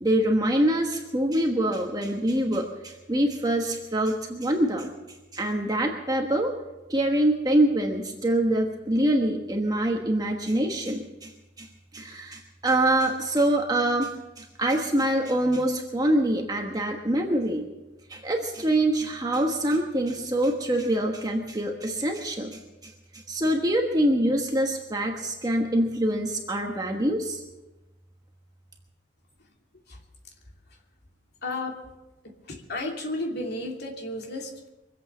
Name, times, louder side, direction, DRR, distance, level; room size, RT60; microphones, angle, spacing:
voice 1, 0.0-4.9 5.3-6.5 6.9-11.3 11.6-11.7 11.9-17.6 18.1-27.4, right 1 dB, 20° right, 2 dB, 1.3 m, -25 dB
voice 2, 31.4-31.8 32.5-34.7, left 2 dB, 60° left, 0 dB, 2.8 m, -32 dB
23.5 x 8.3 x 7.0 m, 1.0 s
head